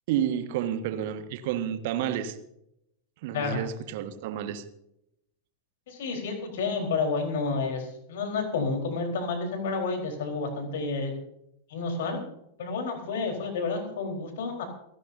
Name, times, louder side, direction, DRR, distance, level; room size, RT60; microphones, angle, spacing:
voice 1, 0.1-2.4 3.2-4.6, right 10 dB, 50° right, 9 dB, 1.5 m, -30 dB
voice 2, 5.9-11.1 11.7-12.2 12.6-14.6, left 4 dB, 55° left, 3 dB, 4.0 m, -30 dB
28.5 x 11.5 x 2.7 m, 0.78 s
figure-of-eight pair, 90°, 0 cm